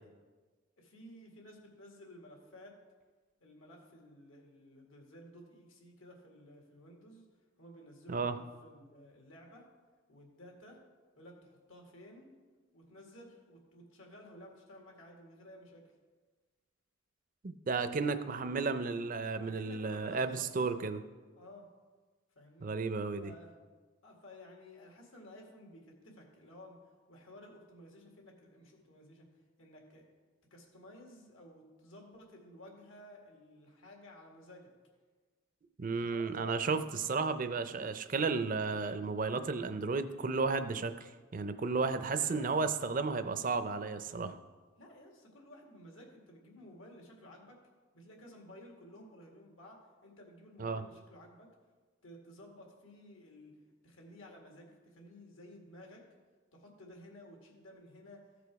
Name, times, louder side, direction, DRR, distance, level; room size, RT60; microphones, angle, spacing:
voice 1, 0.8-2.8 3.4-7.3 7.6-9.7 10.1-10.8 11.2-12.3 12.7-15.8 19.4-20.8 21.4-21.7 22.4-22.7 23.2-23.5 24.0-29.3 29.6-30.1 30.5-34.7 35.8-36.8 42.1-43.2 44.8-47.6 47.9-51.5 52.0-53.5 53.8-56.0 56.5-58.3, left 1 dB, 80° left, 0 dB, 2.0 m, -54 dB
voice 2, 17.4-21.0 22.6-23.3 35.8-44.3 50.6-50.8, right 4 dB, 40° right, 10 dB, 0.5 m, -33 dB
15.0 x 5.1 x 4.7 m, 1.4 s
head